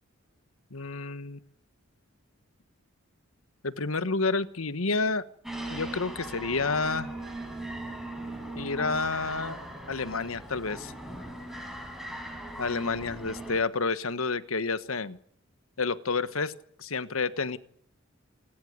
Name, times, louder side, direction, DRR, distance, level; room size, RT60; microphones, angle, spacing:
voice 1, 0.7-1.4 3.6-5.2 5.7-7.1 8.6-9.6 9.9-10.9 12.6-15.2 15.8-16.5 16.8-17.6, left 4 dB, 80° left, 13 dB, 1.4 m, -29 dB
sound 1, 5.4-13.6, right 1 dB, ahead, 6.5 m, -39 dB
28.5 x 14.0 x 9.6 m, 0.63 s
head